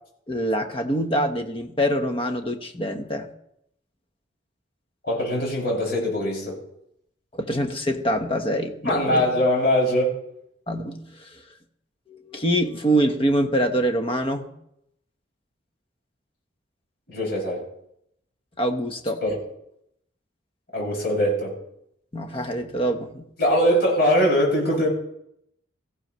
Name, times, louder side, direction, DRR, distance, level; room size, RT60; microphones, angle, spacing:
voice 1, 0.3-3.3 7.3-9.3 10.7-11.3 12.1-14.5 18.6-19.2 22.1-23.3, equal, 30° left, 6 dB, 1.1 m, -25 dB
voice 2, 5.0-6.6 8.8-10.2 17.1-17.6 19.2-19.4 20.7-21.5 23.4-24.9, equal, 55° left, -3 dB, 6.3 m, -22 dB
17.5 x 15.5 x 3.1 m, 0.77 s
head